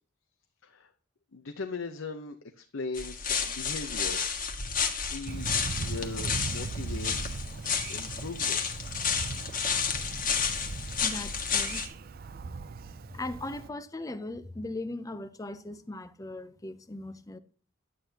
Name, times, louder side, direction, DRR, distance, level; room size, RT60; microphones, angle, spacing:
voice 1, 1.3-4.3 4.9-7.5 7.9-8.6, left 3 dB, 80° left, 0.9 m, -39 dB
sound 1, 2.9-11.9, left 6 dB, 45° left, 1.6 m, -31 dB
Thunder, 5.3-13.7, right 4 dB, 50° right, 0.4 m, -39 dB
voice 2, 11.0-11.8 13.1-17.4, left 2 dB, 15° left, 0.6 m, -38 dB
11.0 x 8.9 x 2.9 m
head